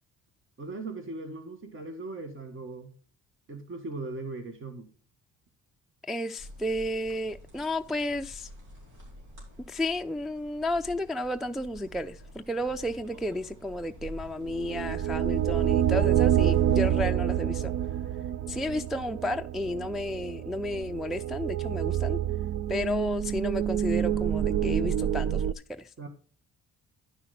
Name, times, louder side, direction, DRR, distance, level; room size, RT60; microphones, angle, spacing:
voice 1, 0.6-2.9 3.5-4.9 26.0-26.1, right 3 dB, 45° right, 1.8 m, -39 dB
voice 2, 6.1-8.5 9.7-17.7 18.5-22.2 22.7-26.1, left 1 dB, ahead, 0.4 m, -32 dB
sound 1, 6.4-17.0, left 1 dB, 75° right, 4.7 m, -45 dB
sound 2, 14.4-25.5, right 10 dB, 60° right, 0.5 m, -27 dB
11.0 x 5.8 x 4.2 m
cardioid pair, 90°, 30 cm